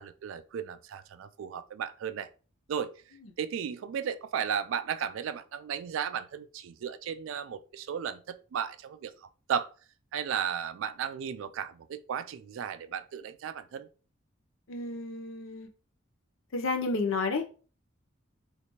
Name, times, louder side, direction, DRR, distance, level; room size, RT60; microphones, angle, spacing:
voice 1, 0.0-2.3 2.7-2.9 3.4-9.7 10.1-13.9, right 8 dB, 75° right, 0.3 m, -35 dB
voice 2, 14.7-15.7 16.5-17.4, left 3 dB, 80° left, 0.6 m, -31 dB
3.2 x 2.9 x 2.8 m
head